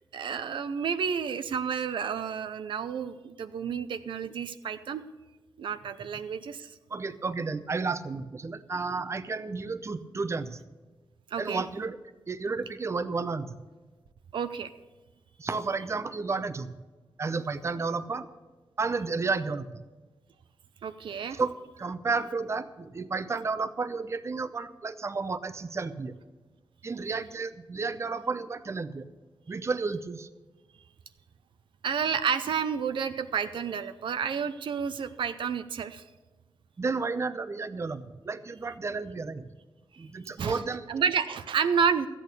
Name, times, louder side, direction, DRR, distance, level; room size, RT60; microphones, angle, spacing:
voice 1, 0.1-5.0 5.6-6.7 11.3-11.6 14.3-14.7 20.8-21.4 31.8-36.0 39.9-40.0 40.4-40.6 40.9-42.1, right 6 dB, 80° right, 10 dB, 0.6 m, -30 dB
voice 2, 6.9-10.6 11.4-12.0 12.3-13.6 15.4-16.8 17.2-18.3 18.8-19.8 21.3-26.1 26.8-29.1 29.5-30.3 36.8-39.5 40.0-40.9, right 4 dB, 35° right, 12 dB, 0.7 m, -32 dB
13.5 x 8.4 x 6.7 m, 1.2 s
cardioid pair, 90°, 8 cm